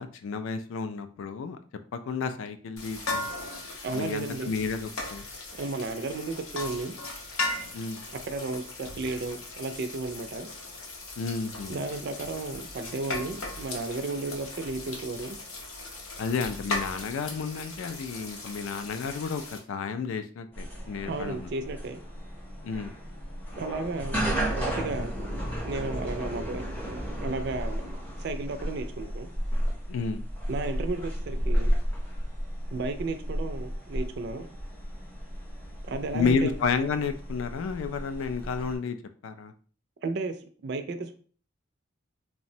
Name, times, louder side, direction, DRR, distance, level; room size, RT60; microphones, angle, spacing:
voice 1, 0.0-1.6 1.9-3.3 3.9-5.3 7.7-8.0 11.2-11.8 16.2-21.5 22.6-22.9 29.9-30.2 36.1-39.0 39.2-39.5, left 5 dB, 70° left, 9 dB, 0.3 m, -31 dB
sound 1, 2.8-19.6, left 2 dB, 85° left, 0.7 m, -38 dB
voice 2, 3.8-4.5 5.5-7.0 8.3-10.5 11.7-15.4 21.1-22.0 23.6-25.1 25.6-29.3 30.5-31.7 32.7-34.5 35.8-36.6 40.0-40.4 40.6-41.1, right 3 dB, 50° right, 8 dB, 0.3 m, -33 dB
sound 2, 20.5-38.8, equal, 10° left, 0.5 m, -33 dB
3.2 x 2.0 x 2.6 m, 0.42 s
head